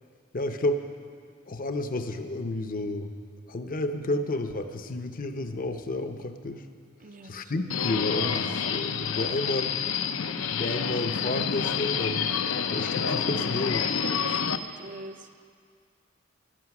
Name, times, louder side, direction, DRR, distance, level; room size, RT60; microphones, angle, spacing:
voice 1, 0.3-0.8 1.5-3.1 3.5-6.6 7.2-9.8 10.5-12.3 12.7-13.9, left 2 dB, 45° left, 7 dB, 0.8 m, -31 dB
voice 2, 7.0-7.9 9.1-9.4 14.2-15.3, right 2 dB, 40° right, 7 dB, 0.6 m, -45 dB
Subway metro underground, 7.7-14.6, left 7 dB, 75° left, 0.7 m, -28 dB
17.5 x 12.0 x 6.0 m, 2.2 s
head